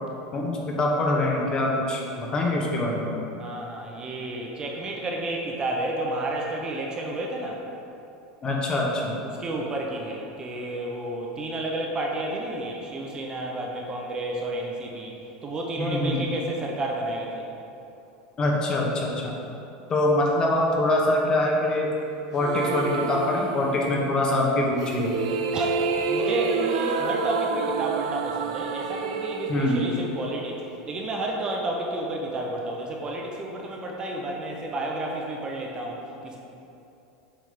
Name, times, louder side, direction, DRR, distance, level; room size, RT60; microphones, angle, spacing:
voice 1, 0.3-3.1 8.4-9.2 15.8-16.3 18.4-19.4 19.9-21.9 22.3-25.1 29.5-29.8, left 1 dB, 25° left, -1 dB, 0.9 m, -24 dB
voice 2, 3.4-7.6 9.2-15.1 15.4-17.5 25.5-36.4, right 1 dB, 25° right, 0 dB, 0.7 m, -31 dB
sound 1, 22.4-24.1 24.8-30.9, right 5 dB, 90° right, 0.4 m, -29 dB
7.6 x 3.4 x 5.0 m, 2.8 s
supercardioid pair, 135°, 3 cm